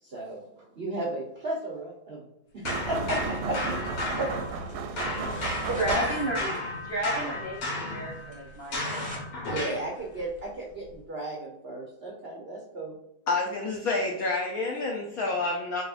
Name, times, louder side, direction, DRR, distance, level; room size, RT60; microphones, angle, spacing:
voice 1, 0.0-2.2 2.5-4.5 4.8-5.3 5.6-6.3 9.5-13.0, right 1 dB, 70° right, -3 dB, 0.5 m, -34 dB
sound 1, 2.6-4.7 5.0-9.9, left 1 dB, 90° left, 2.2 m, -33 dB
sound 2, 2.6-6.5, right 5 dB, 90° right, 1.4 m, -34 dB
sound 3, 5.1-5.9 6.3-6.4 6.6-6.7 7.1-7.2 7.6-7.7 8.3-9.3 9.6-11.0, equal, 5° right, 0.8 m, -44 dB
voice 2, 5.7-9.1, right 1 dB, 35° left, -4 dB, 1.3 m, -32 dB
voice 3, 13.3-15.8, left 3 dB, 70° left, -1 dB, 0.8 m, -28 dB
4.1 x 4.0 x 2.5 m, 0.81 s
omnidirectional pair, 2.2 m